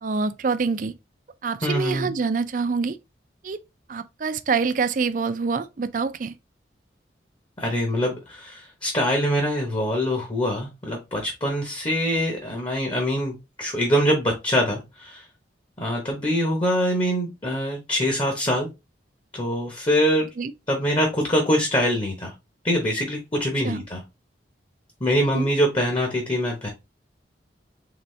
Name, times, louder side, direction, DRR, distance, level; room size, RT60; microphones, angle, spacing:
voice 1, 0.0-0.9 1.4-3.0 3.4-3.6 3.9-6.3 20.4-20.5 23.6-23.8 25.2-25.5, right 4 dB, 45° right, 0.4 m, -26 dB
voice 2, 1.6-2.1 7.6-15.3 15.8-18.7 19.3-20.3 20.7-22.3 22.6-24.0 25.0-26.7, equal, 30° left, 0.9 m, -24 dB
4.0 x 3.5 x 3.2 m
head